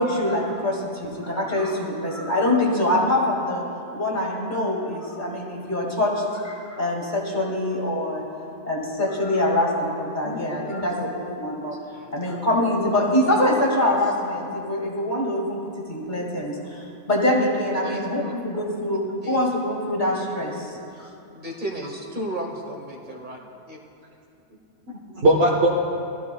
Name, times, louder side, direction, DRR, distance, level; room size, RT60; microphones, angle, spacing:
voice 1, 0.0-3.6 3.9-8.4 8.6-11.7 12.1-20.8, left 1 dB, 40° left, -2 dB, 2.2 m, -24 dB
voice 2, 10.2-10.8 16.1-16.3 24.9-25.8, right 1 dB, 55° right, -5 dB, 1.5 m, -22 dB
voice 3, 17.8-18.3 19.2-19.5 20.9-23.4 23.7-23.8, right 1 dB, 40° right, -1 dB, 1.9 m, -34 dB
20.5 x 14.5 x 2.3 m, 2.7 s
omnidirectional pair, 1.2 m